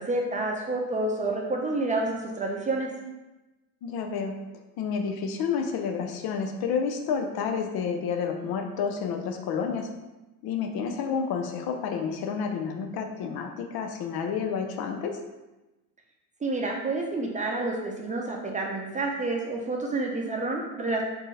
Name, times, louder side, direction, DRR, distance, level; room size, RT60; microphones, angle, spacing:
voice 1, 0.0-2.9 16.4-21.0, right 2 dB, 15° right, -1 dB, 0.6 m, -29 dB
voice 2, 3.8-9.9 10.4-15.2, left 6 dB, 55° left, 4 dB, 0.5 m, -30 dB
4.4 x 2.7 x 3.2 m, 1.1 s
supercardioid pair, 100°, 46 cm